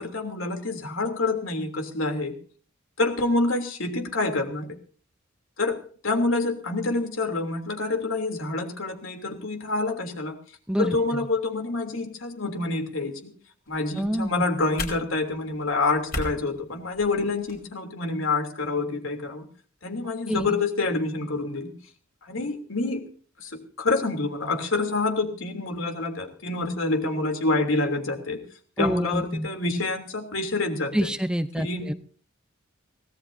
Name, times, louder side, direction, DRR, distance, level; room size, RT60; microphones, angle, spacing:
voice 1, 0.0-2.3 3.0-4.7 5.6-5.8 6.0-10.3 10.8-13.3 13.7-19.5 19.8-21.7 22.2-23.0 23.4-28.4 28.8-31.1 31.6-31.9, left 3 dB, 80° left, 4 dB, 3.2 m, -27 dB
sound 1, 13.7-17.6, left 2 dB, 50° left, 4.8 m, -38 dB
voice 2, 14.0-14.4 20.3-20.5 28.8-29.5 30.9-31.9, equal, 5° right, 10 dB, 0.7 m, -27 dB
24.5 x 17.5 x 2.8 m, 0.44 s
head